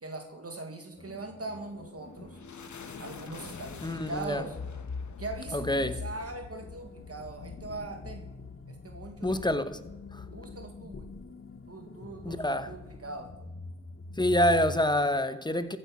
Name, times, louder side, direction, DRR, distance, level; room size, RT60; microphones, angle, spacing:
voice 1, 0.0-2.4 3.0-4.6 5.2-8.3 8.7-9.5 10.3-11.1 11.7-13.5, right 2 dB, 55° right, 1.8 m, -41 dB
sound 1, 1.0-14.9, left 3 dB, 50° left, 1.5 m, -44 dB
sound 2, 1.8-12.3, left 5 dB, 80° left, 1.2 m, -49 dB
voice 2, 3.8-4.4 5.5-6.0 9.2-9.8 10.1-10.2 12.2-12.7 14.2-15.8, left 1 dB, 15° left, 1.1 m, -27 dB
14.5 x 7.8 x 6.1 m
cardioid pair, 55°, 29 cm